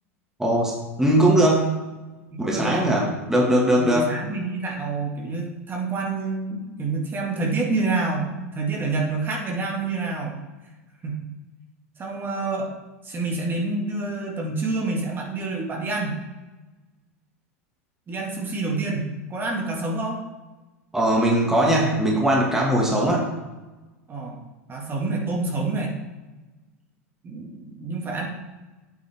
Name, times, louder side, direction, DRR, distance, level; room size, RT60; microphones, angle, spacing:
voice 1, 0.4-0.7 1.0-1.8 2.4-4.1 20.9-23.2, right 1 dB, 5° right, -3 dB, 1.9 m, -20 dB
voice 2, 2.3-2.9 3.8-10.4 11.0-11.3 12.0-12.7 13.0-16.2 18.1-20.2 24.1-24.4 24.7-26.0 27.2-28.2, right 3 dB, 25° right, -1 dB, 2.0 m, -28 dB
8.4 x 8.3 x 3.6 m, 1.1 s
hypercardioid pair, 100°, 8 cm